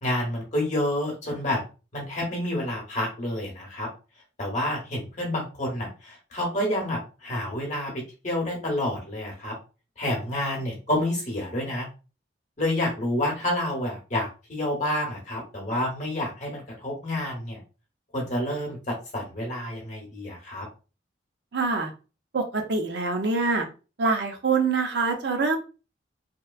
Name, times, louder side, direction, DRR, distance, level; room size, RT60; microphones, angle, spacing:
voice 1, 0.0-1.6 1.9-3.9 4.4-7.9 8.2-9.5 10.0-11.9 12.6-17.6 18.1-20.6, left 1 dB, 40° left, -1 dB, 0.9 m, -29 dB
voice 2, 21.5-21.9 22.3-23.7 24.0-25.6, right 4 dB, 65° right, 3 dB, 0.6 m, -25 dB
2.9 x 2.1 x 2.3 m, 0.33 s
head